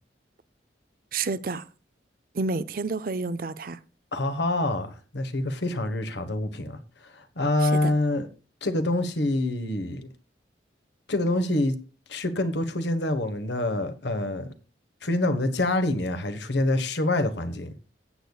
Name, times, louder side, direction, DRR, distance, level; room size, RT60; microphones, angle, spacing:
voice 1, 1.1-1.6 2.3-3.8 7.6-7.9, right 3 dB, 50° right, 0.5 m, -29 dB
voice 2, 4.1-8.3 8.6-10.1 11.1-11.8 12.1-14.5 15.0-17.7, left 1 dB, 70° left, 1.2 m, -26 dB
15.5 x 8.2 x 2.3 m
head